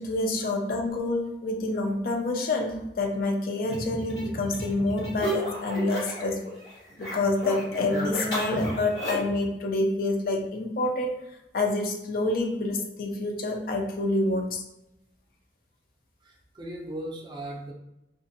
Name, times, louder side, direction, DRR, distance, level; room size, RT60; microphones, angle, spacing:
voice 1, 0.0-6.5 7.0-11.1 11.5-14.6, left 2 dB, 50° left, 2 dB, 0.4 m, -27 dB
sound 1, 3.7-6.3 6.6-9.4, equal, 80° left, 1.3 m, -33 dB
voice 2, 16.2-17.7, right 1 dB, 25° right, -1 dB, 0.4 m, -37 dB
2.5 x 2.1 x 2.6 m, 0.90 s
head